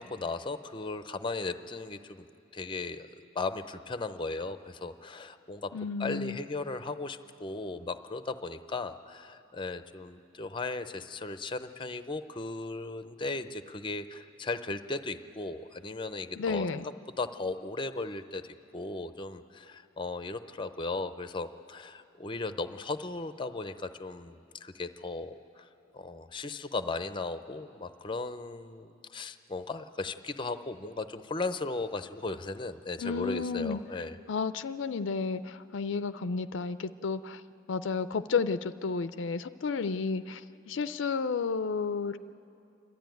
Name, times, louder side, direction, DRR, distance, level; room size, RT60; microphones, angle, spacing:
voice 1, 0.0-2.2 2.5-3.1 3.3-5.7 6.0-25.7 25.9-34.2, left 3 dB, 25° left, 11 dB, 0.6 m, -36 dB
voice 2, 5.7-6.4 16.4-16.9 33.0-33.8 34.3-37.4 37.7-42.2, left 5 dB, 65° left, 13 dB, 0.4 m, -32 dB
29.5 x 12.5 x 9.2 m, 2.7 s
head